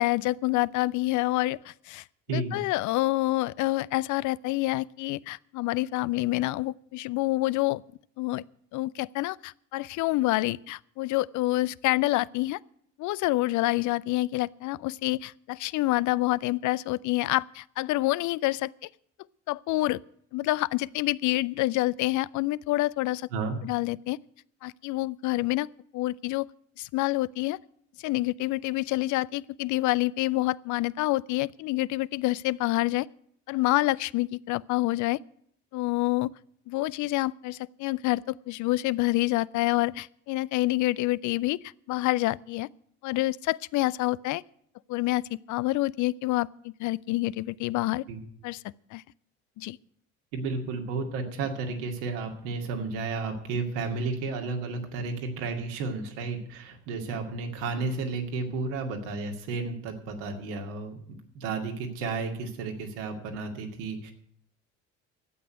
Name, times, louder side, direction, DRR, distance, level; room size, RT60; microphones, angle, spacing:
voice 1, 0.0-2.0 2.3-7.8 8.2-8.4 8.7-12.6 13.0-18.9 19.5-20.0 20.3-23.3 23.6-24.2 24.6-25.7 25.9-26.5 26.8-27.6 28.0-33.1 33.5-35.2 35.7-36.3 36.7-42.7 43.0-44.4 44.9-48.0 48.4-48.6 48.9-49.0 49.6-49.8, left 18 dB, 55° left, 0.5 m, -27 dB
voice 2, 2.3-2.6 23.3-23.6 48.1-48.2 50.3-64.1, right 3 dB, 75° right, 2.4 m, -32 dB
12.5 x 8.6 x 9.3 m
hypercardioid pair, 60°, 38 cm